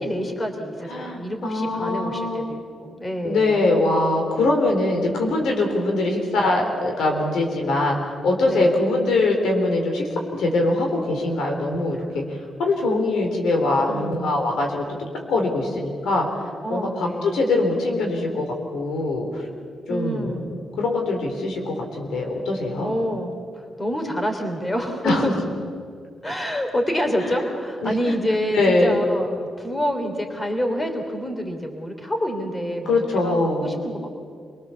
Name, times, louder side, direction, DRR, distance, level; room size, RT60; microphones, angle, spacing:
voice 1, 0.0-3.6 8.4-8.7 13.9-14.4 16.6-17.3 19.9-20.5 22.8-23.4 23.8-25.3 26.2-34.1, equal, 20° left, 4 dB, 3.3 m, -27 dB
voice 2, 0.9-2.5 3.2-12.2 12.6-14.9 15.3-16.3 16.7-18.4 18.7-19.5 19.9-22.9 25.0-25.3 27.2-27.4 27.8-28.1 28.5-29.0 32.9-33.7, left 2 dB, 90° left, 2 dB, 4.0 m, -22 dB
27.0 x 19.5 x 7.1 m, 2.1 s
cardioid pair, 85°, 0 cm